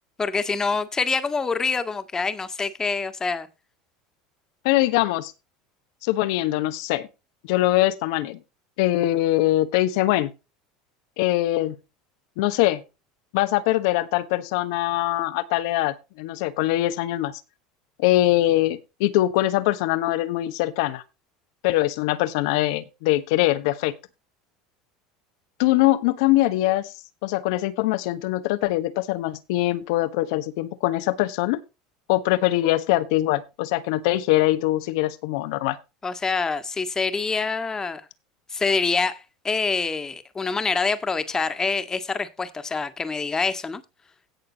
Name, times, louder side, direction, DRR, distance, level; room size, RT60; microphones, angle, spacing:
voice 1, 0.2-3.5 36.0-38.0 38.5-43.8, left 4 dB, 20° left, 1.8 m, -26 dB
voice 2, 4.6-5.3 6.0-7.1 7.5-8.4 8.8-10.3 11.2-11.7 12.4-12.8 13.3-17.3 18.0-21.0 21.6-23.9 25.6-26.9 27.2-31.6 32.1-35.8, left 16 dB, 70° left, 1.3 m, -22 dB
17.0 x 6.6 x 3.0 m
hypercardioid pair, 85°, 3 cm